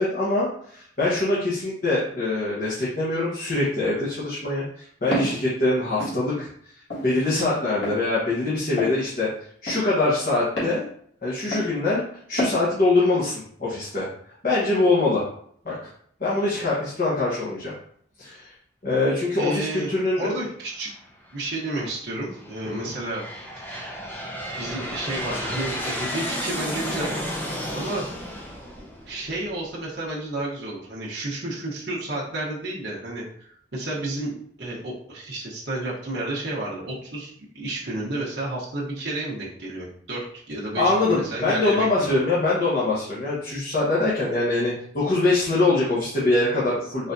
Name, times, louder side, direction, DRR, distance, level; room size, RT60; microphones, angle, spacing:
voice 1, 0.0-6.7 7.0-9.3 9.6-10.8 11.2-12.0 12.3-14.1 14.4-15.2 15.6-15.9 16.2-17.7 18.2-18.5 18.8-20.4 21.7-21.9 22.6-22.9 40.8-47.1, left 2 dB, 45° left, -8 dB, 1.0 m, -23 dB
Walk footsteps, 5.1-5.4 6.0-6.2 6.9-7.1 7.8-8.0 8.8-9.0 9.7-9.8 10.6-10.8 11.5-11.7 12.4-12.6, equal, 70° left, 1.6 m, -27 dB
voice 2, 19.4-20.9 21.3-23.2 23.6-24.0 24.6-27.4 27.7-28.0 29.1-42.2, right 2 dB, 65° right, -5 dB, 1.0 m, -31 dB
Aircraft, 20.9-21.4 22.1-29.7, equal, 10° left, 0.6 m, -33 dB
4.3 x 3.3 x 2.6 m, 0.63 s
head